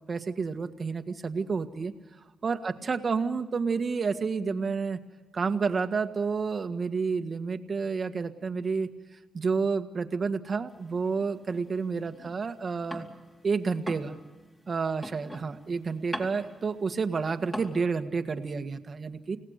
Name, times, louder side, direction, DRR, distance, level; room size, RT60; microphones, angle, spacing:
voice 1, 0.0-1.9 2.4-5.0 5.3-8.9 9.3-13.1 13.4-14.2 14.7-19.4, right 5 dB, 45° right, 8 dB, 1.7 m, -30 dB
sound 1, 10.7-13.4 13.7-17.8, equal, 15° left, 4.2 m, -42 dB
30.0 x 18.0 x 6.6 m, 1.2 s
cardioid pair, 85°, 0 cm